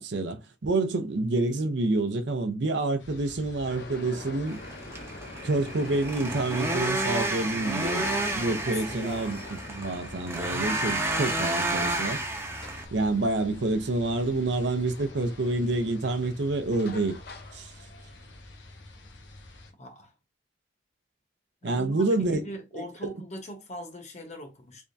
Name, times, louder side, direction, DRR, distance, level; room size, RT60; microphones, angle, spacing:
voice 1, 0.0-4.6 5.4-9.4 9.7-12.2 12.9-17.2 17.5-17.7 21.6-22.4 22.8-23.1, right 2 dB, 70° right, 0.6 m, -28 dB
sound 1, 3.0-19.7, left 2 dB, 85° left, 1.0 m, -47 dB
sound 2, 3.6-18.4, left 3 dB, 60° left, 0.7 m, -45 dB
sound 3, 4.5-12.8, right 2 dB, 15° right, 0.7 m, -31 dB
voice 2, 8.7-9.3 19.8-20.1 21.6-24.9, equal, 40° left, 1.0 m, -41 dB
3.5 x 3.3 x 2.6 m
head